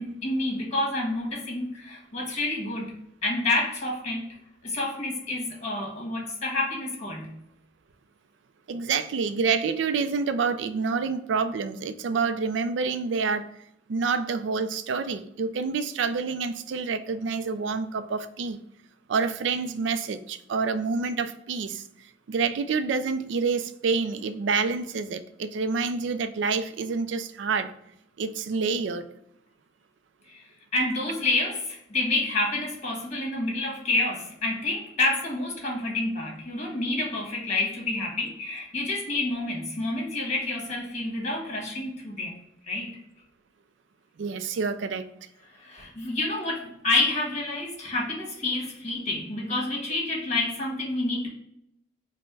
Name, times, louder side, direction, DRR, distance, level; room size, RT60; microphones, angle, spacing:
voice 1, 0.0-2.9 3.2-4.3 4.6-7.3 30.3-30.4 30.7-42.3 42.7-43.0 45.6-51.3, left 2 dB, 40° left, -1 dB, 1.3 m, -28 dB
voice 2, 8.7-13.5 13.9-18.6 19.1-21.8 22.3-27.7 28.2-29.1 44.2-45.1, right 5 dB, 80° right, 11 dB, 0.4 m, -27 dB
4.2 x 2.1 x 4.6 m, 0.78 s
head